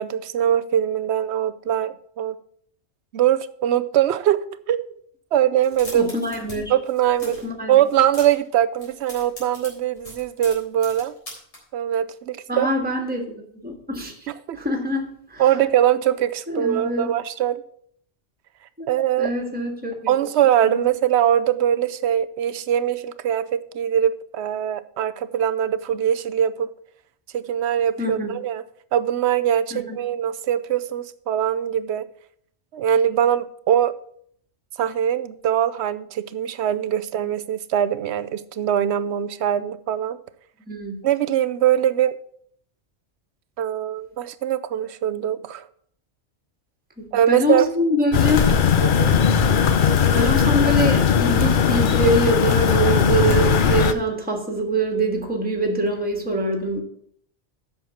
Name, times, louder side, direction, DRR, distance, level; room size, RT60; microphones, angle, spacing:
voice 1, 0.0-2.4 3.1-4.9 5.3-6.1 6.7-7.4 7.7-11.1 11.7-12.7 14.3-14.6 15.4-17.6 18.9-19.3 20.1-26.7 27.3-28.6 28.9-32.1 32.7-33.9 34.8-40.2 41.0-42.2 43.6-45.7 47.1-47.7 48.8-49.1, right 10 dB, 75° right, 14 dB, 0.9 m, -22 dB
sound 1, 5.6-6.6 6.8-7.5 7.8-8.5 8.7-11.6, left 1 dB, 85° left, 4.1 m, -40 dB
voice 2, 5.9-6.7 7.2-7.8 12.5-14.3 14.5-15.4 16.5-17.1 18.8-18.9 19.2-20.1 20.6-20.8 28.0-28.3 29.7-30.0 40.7-41.0 47.0-48.5 49.5-49.7 50.1-56.8, right 1 dB, 10° right, 2 dB, 1.6 m, -24 dB
sound 2, 48.1-53.9, left 7 dB, 55° left, 0.8 m, -18 dB
7.9 x 6.1 x 7.0 m, 0.65 s
omnidirectional pair, 1.1 m